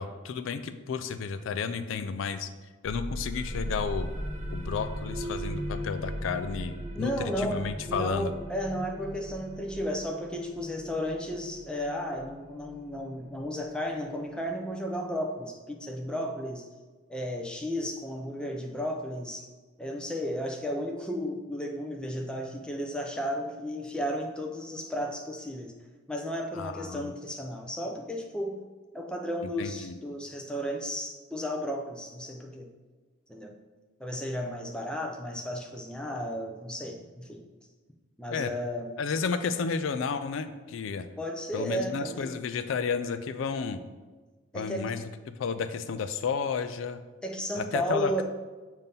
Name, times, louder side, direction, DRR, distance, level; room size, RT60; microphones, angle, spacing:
voice 1, 0.0-2.5 2.8-4.1 4.5-8.3 26.5-27.1 29.6-30.0 38.3-38.5 39.0-41.1 41.5-43.8 44.5-47.0 47.5-48.2, left 5 dB, 70° left, 10 dB, 0.3 m, -32 dB
sound 1, 2.8-14.2, equal, 35° right, 0.7 m, -38 dB
voice 2, 7.0-16.7 17.1-19.5 19.8-25.7 26.1-28.6 28.9-32.7 33.3-33.5 34.0-37.4 38.2-39.0 41.2-42.3 44.5-44.9 47.2-48.2, equal, 5° left, 1 dB, 0.5 m, -34 dB
7.2 x 2.7 x 5.3 m, 1.3 s
head